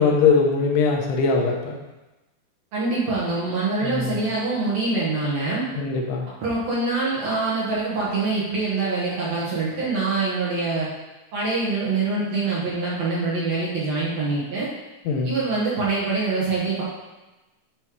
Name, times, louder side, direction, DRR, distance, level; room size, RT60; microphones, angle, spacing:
voice 1, 0.0-1.7 3.8-4.2 5.8-6.3 15.1-15.4, left 5 dB, 80° left, 0 dB, 2.9 m, -21 dB
voice 2, 2.7-5.7 6.3-10.9 11.3-14.7 15.2-16.8, right 3 dB, 60° right, -8 dB, 1.9 m, -24 dB
9.7 x 3.3 x 4.6 m, 1.1 s
omnidirectional pair, 5.0 m